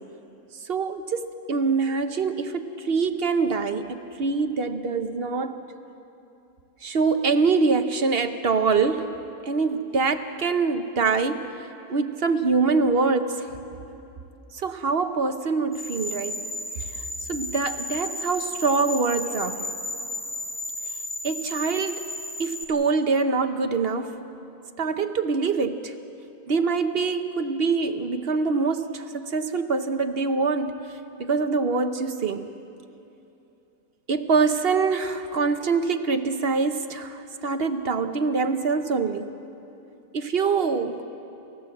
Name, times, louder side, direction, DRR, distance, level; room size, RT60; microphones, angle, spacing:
voice 1, 0.6-5.6 6.8-9.1 9.5-11.4 11.9-13.5 14.6-16.4 17.3-19.7 21.2-22.1 22.4-24.2 24.8-25.9 26.5-30.8 31.2-32.5 34.1-39.3 40.1-41.0, right 4 dB, 45° right, 8 dB, 0.9 m, -24 dB
sound 1, 15.7-22.6, left 1 dB, 15° left, 2.6 m, -34 dB
29.0 x 15.0 x 7.8 m, 2.8 s
omnidirectional pair, 1.7 m